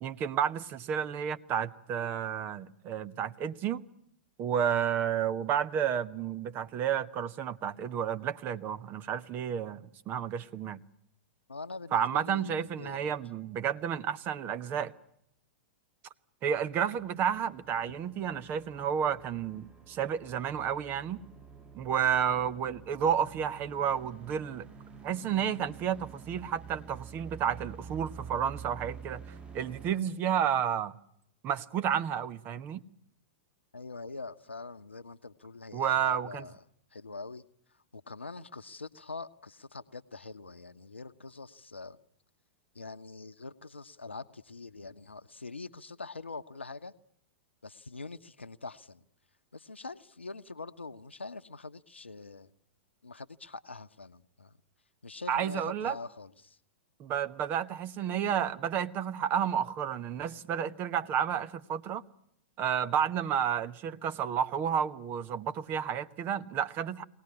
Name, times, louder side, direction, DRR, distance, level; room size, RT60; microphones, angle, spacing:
voice 1, 0.0-3.8 4.4-10.8 11.9-14.9 16.4-21.2 21.8-24.7 25.0-29.2 29.5-30.9 31.4-32.8 35.7-36.5 55.3-56.0 57.0-62.0 62.6-67.0, right 8 dB, 35° right, 1.1 m, -31 dB
voice 2, 11.5-13.2 33.7-36.6 36.9-37.4 37.9-42.0 42.7-46.9 47.6-49.0 49.5-52.5 53.0-54.5 55.0-56.6, left 3 dB, 85° left, 0.9 m, -44 dB
sound 1, 16.9-29.9, right 6 dB, 20° right, 1.6 m, -49 dB
23.0 x 18.5 x 9.7 m
figure-of-eight pair, 105°, 6 cm